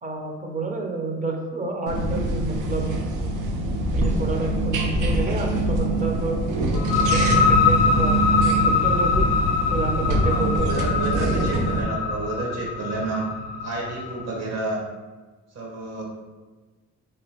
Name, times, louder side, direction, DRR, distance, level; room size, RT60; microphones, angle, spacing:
voice 1, 0.0-3.0 3.9-6.4 7.0-9.3 9.7-10.9, right 3 dB, 25° right, 2 dB, 0.6 m, -29 dB
sound 1, 1.9-11.8, right 2 dB, 80° right, 0.5 m, -24 dB
sound 2, 6.7-14.2, left 5 dB, 55° left, 0.5 m, -23 dB
voice 2, 10.2-13.2 13.6-14.8 15.5-16.0, right 2 dB, 60° right, -3 dB, 1.2 m, -30 dB
2.9 x 2.8 x 2.8 m, 1.3 s
cardioid pair, 90°, 30 cm